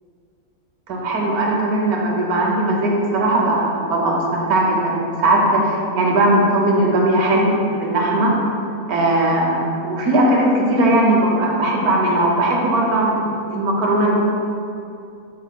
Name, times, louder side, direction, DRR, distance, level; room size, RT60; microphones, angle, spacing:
voice 1, 0.9-8.3 8.9-14.2, right 1 dB, 90° right, -2 dB, 1.3 m, -18 dB
4.9 x 4.7 x 2.2 m, 2.6 s
omnidirectional pair, 1.6 m